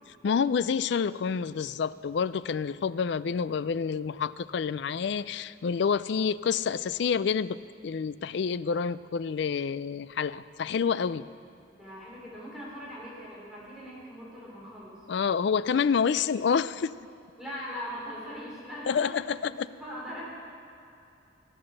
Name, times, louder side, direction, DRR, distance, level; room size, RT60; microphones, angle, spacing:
voice 1, 0.2-7.6 7.8-11.2 15.1-16.9 18.9-19.7, left 6 dB, 60° left, 16 dB, 0.3 m, -28 dB
voice 2, 11.7-15.0 17.4-19.2 19.4-20.2, equal, ahead, -7 dB, 4.0 m, -41 dB
17.5 x 9.0 x 6.5 m, 2.7 s
head